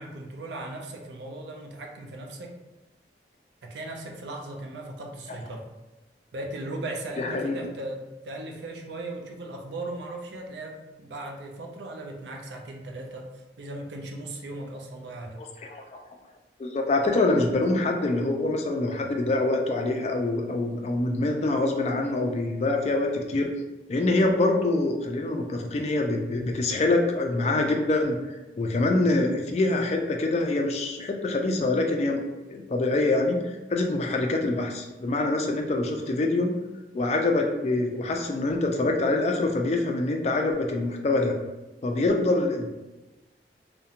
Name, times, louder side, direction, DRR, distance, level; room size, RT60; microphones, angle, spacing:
voice 1, 0.0-2.6 3.6-5.7 6.3-13.3 13.6-15.4, right 2 dB, 80° right, 1 dB, 0.4 m, -37 dB
voice 2, 7.2-7.6 15.4-15.8 16.6-23.5 23.9-28.2 28.6-36.5 36.9-41.3 41.8-42.7, left 2 dB, 40° left, 2 dB, 0.3 m, -25 dB
2.8 x 2.1 x 2.4 m, 1.1 s
head